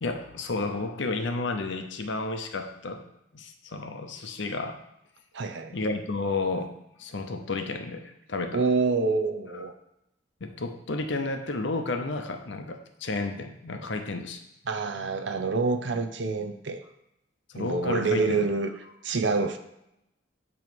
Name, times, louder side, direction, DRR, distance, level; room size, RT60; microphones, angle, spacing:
voice 1, 0.0-3.0 3.3-4.8 5.7-6.7 7.0-8.6 10.4-14.4 17.5-18.5, left 3 dB, 60° left, 6 dB, 0.7 m, -32 dB
voice 2, 5.3-5.8 8.5-9.7 14.7-16.8 17.6-18.7 19.0-19.6, right 4 dB, 60° right, 7 dB, 0.6 m, -27 dB
9.2 x 3.1 x 5.2 m, 0.83 s
head